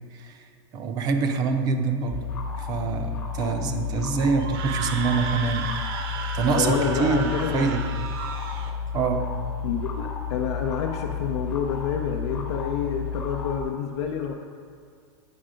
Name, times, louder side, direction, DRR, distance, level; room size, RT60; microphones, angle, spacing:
voice 1, 0.7-2.2 2.6-5.7 6.3-7.8 8.9-9.2, right 4 dB, 30° right, 7 dB, 0.6 m, -25 dB
sound 1, 2.1-13.6, left 6 dB, 20° left, 0.9 m, -32 dB
Screaming, 4.4-8.7, right 6 dB, 55° right, 0.8 m, -34 dB
voice 2, 6.5-7.7 9.6-14.3, left 7 dB, 70° left, 1 dB, 0.6 m, -28 dB
9.4 x 5.5 x 5.0 m, 2.1 s
supercardioid pair, 165°, 14 cm